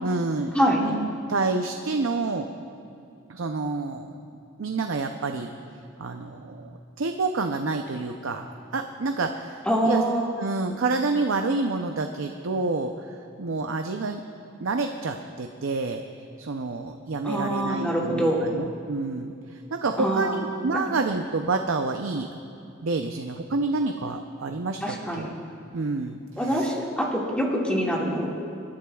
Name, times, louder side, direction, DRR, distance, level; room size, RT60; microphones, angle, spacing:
voice 1, 0.0-2.5 3.3-4.2 4.6-5.5 6.0-8.4 8.7-10.0 10.4-14.2 14.6-16.0 16.4-22.3 22.8-25.3 25.7-26.7, right 3 dB, 75° right, 5 dB, 0.6 m, -28 dB
voice 2, 9.7-10.3 17.2-18.5 20.0-20.4 24.8-25.3 26.4-28.3, equal, 5° left, -4 dB, 1.9 m, -25 dB
26.5 x 11.5 x 2.3 m, 2.7 s
head